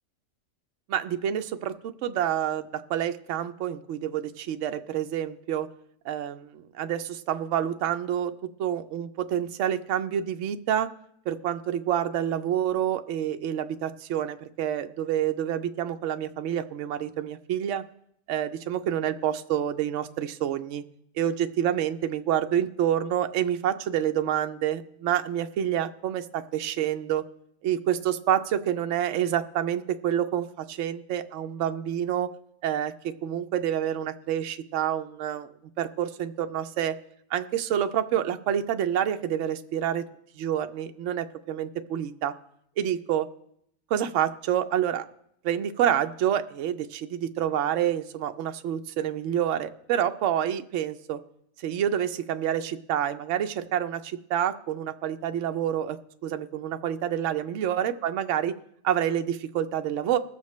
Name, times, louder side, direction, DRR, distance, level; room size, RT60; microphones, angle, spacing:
voice 1, 0.9-5.7 6.0-8.3 8.6-10.9 11.3-17.8 18.3-20.8 21.2-27.2 27.6-32.3 32.6-35.5 35.8-37.0 37.3-40.1 40.4-42.3 42.8-43.3 43.9-45.1 45.4-51.2 51.6-58.6 58.8-60.2, right 10 dB, 70° right, 8 dB, 0.9 m, -28 dB
21.0 x 7.3 x 3.1 m, 0.73 s
omnidirectional pair, 1.4 m